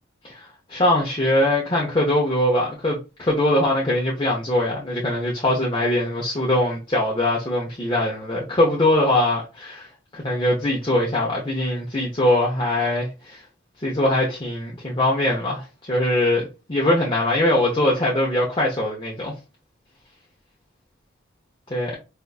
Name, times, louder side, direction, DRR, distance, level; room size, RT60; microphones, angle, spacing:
voice 1, 0.2-9.9 10.1-13.4 13.8-19.3 21.7-22.0, left 1 dB, 25° left, 0.6 m, -22 dB
4.3 x 2.4 x 2.3 m
head